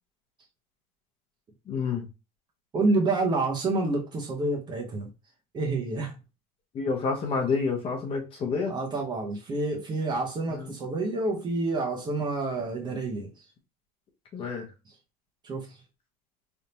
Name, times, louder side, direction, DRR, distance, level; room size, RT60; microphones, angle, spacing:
voice 1, 1.7-2.1 6.7-8.7 10.5-10.7 14.3-14.7, left 4 dB, 30° left, 0.9 m, -29 dB
voice 2, 2.7-5.1 5.5-6.1 8.7-13.3 15.4-15.7, right 2 dB, 25° right, 0.7 m, -28 dB
3.4 x 2.7 x 2.7 m
cardioid pair, 170°, 19 cm